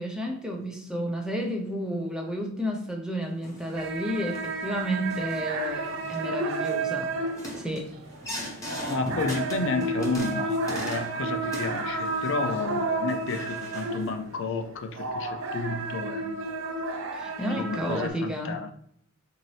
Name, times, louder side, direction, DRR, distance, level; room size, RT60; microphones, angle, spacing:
voice 1, 0.0-7.1 7.6-7.9 17.1-18.6, equal, 5° right, 0.5 m, -31 dB
sound 1, 3.4-3.9 4.3-4.6 5.1-5.5 5.9-6.2 6.5-6.8 7.3-11.2 11.4-12.6 13.1-14.1, left 1 dB, 15° left, 1.0 m, -38 dB
sound 2, 3.8-14.4 14.7-18.1, right 3 dB, 65° right, 0.6 m, -32 dB
voice 2, 8.9-16.4 17.6-18.7, left 4 dB, 60° left, 0.4 m, -31 dB
4.0 x 2.7 x 3.1 m
head